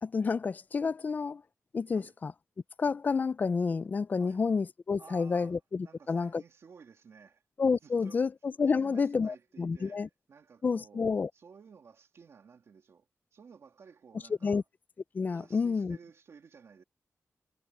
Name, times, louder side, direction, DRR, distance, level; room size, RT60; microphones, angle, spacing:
voice 1, 0.0-1.4 1.7-2.3 2.8-6.4 7.6-10.1 10.6-11.3 14.4-14.6 15.1-16.0, left 5 dB, 35° left, 0.4 m, -29 dB
voice 2, 5.0-7.4 7.8-8.2 8.6-14.6 15.3-16.8, right 6 dB, 60° right, 2.7 m, -55 dB
wide cardioid pair, 180°, 5 cm